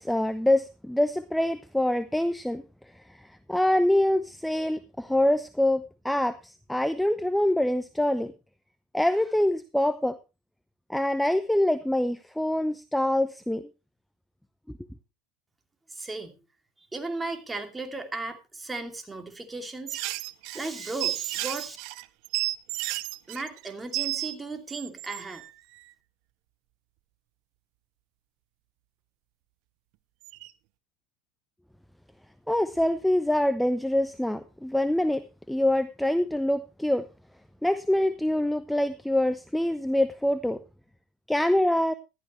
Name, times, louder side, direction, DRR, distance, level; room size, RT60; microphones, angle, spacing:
voice 1, 0.0-2.6 3.1-8.3 8.9-10.2 10.9-13.7 32.5-35.2 35.5-37.0 37.6-40.6 41.3-41.9, left 1 dB, 5° left, 14 dB, 0.7 m, -25 dB
voice 2, 15.9-16.4 16.9-20.0 20.5-21.8 23.3-25.4, right 3 dB, 15° right, 5 dB, 2.6 m, -36 dB
sound 1, 19.9-24.3 24.7-25.5 30.2-30.5, right 18 dB, 65° right, 0.7 m, -32 dB
15.0 x 12.0 x 3.1 m, 0.28 s
hypercardioid pair, 90°, 0 cm